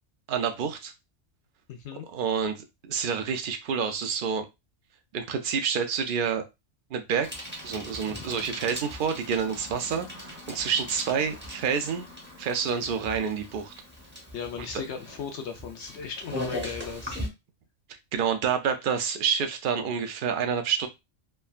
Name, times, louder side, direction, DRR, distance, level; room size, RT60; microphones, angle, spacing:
voice 1, 0.3-0.9 2.1-2.6 2.8-4.4 5.1-6.4 6.9-7.3 7.6-12.1 12.4-13.7 18.1-20.9, right 7 dB, 65° right, 7 dB, 0.5 m, -28 dB
voice 2, 1.7-2.1 14.3-17.2, left 6 dB, 70° left, 5 dB, 0.8 m, -37 dB
Bicycle, 7.2-17.3, left 1 dB, 10° right, 0.6 m, -39 dB
3.3 x 2.1 x 2.3 m, 0.22 s
omnidirectional pair, 1.3 m